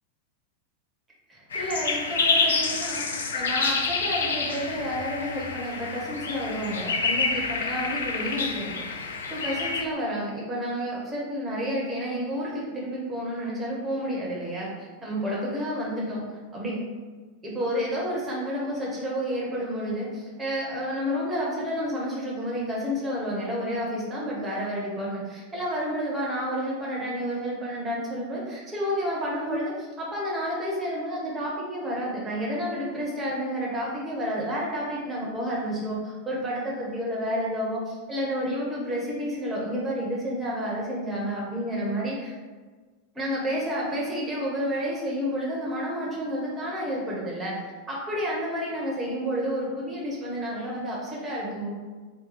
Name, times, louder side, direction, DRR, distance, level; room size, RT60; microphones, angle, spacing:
voice 1, 1.3-8.9 9.3-16.2 16.5-16.8 17.4-42.3 43.1-47.5 47.9-51.7, equal, 15° right, -5 dB, 1.1 m, -30 dB
sound 1, 1.5-9.8, left 4 dB, 65° left, 0.3 m, -28 dB
2.9 x 2.2 x 4.0 m, 1.4 s
figure-of-eight pair, 90°, 0 cm